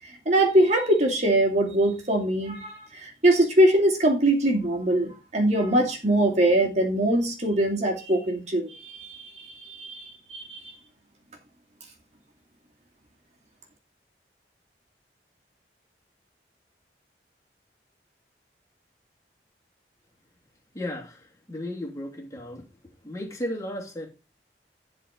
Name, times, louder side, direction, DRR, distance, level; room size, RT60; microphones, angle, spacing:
voice 1, 0.1-10.6, right 1 dB, 40° right, 1 dB, 2.4 m, -23 dB
voice 2, 20.7-21.1 21.5-22.6 23.0-24.1, left 1 dB, 20° left, -1 dB, 3.0 m, -34 dB
12.0 x 4.5 x 5.7 m, 0.28 s
head